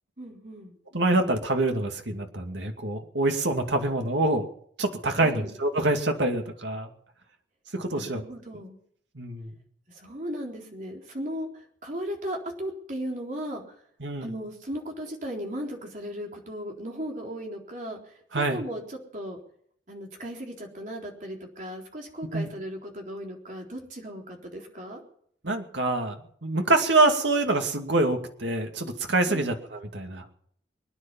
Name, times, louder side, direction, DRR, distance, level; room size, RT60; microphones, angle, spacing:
voice 1, 0.2-0.7 5.1-5.5 7.9-8.8 9.9-13.8 14.2-19.4 19.9-25.0 29.3-29.6, equal, 45° right, 0 dB, 3.9 m, -36 dB
voice 2, 0.9-4.5 4.8-6.9 7.7-8.2 9.1-9.5 14.0-14.3 18.3-18.6 22.3-22.5 25.4-30.2, right 2 dB, 75° right, 4 dB, 2.4 m, -25 dB
24.5 x 10.0 x 5.6 m, 0.64 s
head